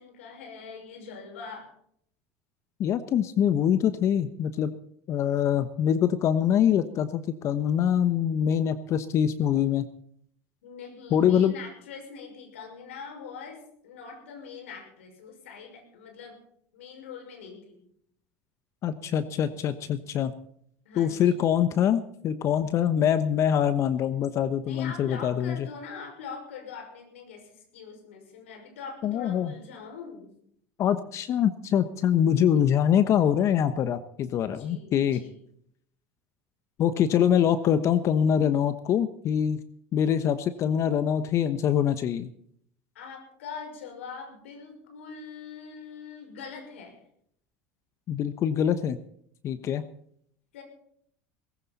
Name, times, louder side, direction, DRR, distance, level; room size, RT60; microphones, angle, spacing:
voice 1, 0.0-1.7 10.6-16.4 16.7-17.8 20.8-21.3 24.6-30.3 34.5-35.4 42.9-47.0 50.5-50.6, left 5 dB, 80° left, 4 dB, 5.9 m, -43 dB
voice 2, 2.8-4.7 5.1-9.9 11.1-11.5 18.8-20.3 21.0-25.7 29.0-29.5 30.8-35.2 36.8-39.6 39.9-42.3 48.1-49.0 49.4-49.8, left 9 dB, 45° left, 12 dB, 1.1 m, -24 dB
19.0 x 16.5 x 4.2 m, 0.67 s
hypercardioid pair, 85°, 7 cm